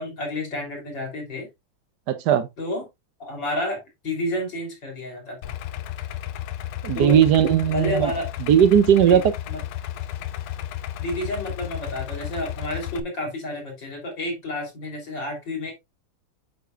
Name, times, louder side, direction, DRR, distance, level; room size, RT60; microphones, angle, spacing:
voice 1, 0.0-1.5 2.6-2.9 3.2-5.6 6.9-7.2 7.6-8.3 9.0-9.6 11.0-15.7, left 1 dB, 55° left, 3.8 m, -30 dB
voice 2, 2.1-2.5 6.8-8.1 8.4-9.2, right 9 dB, 65° right, 1.2 m, -17 dB
Idling, 5.4-13.0, left 12 dB, 85° left, 1.5 m, -33 dB
8.3 x 6.6 x 2.4 m
omnidirectional pair, 2.4 m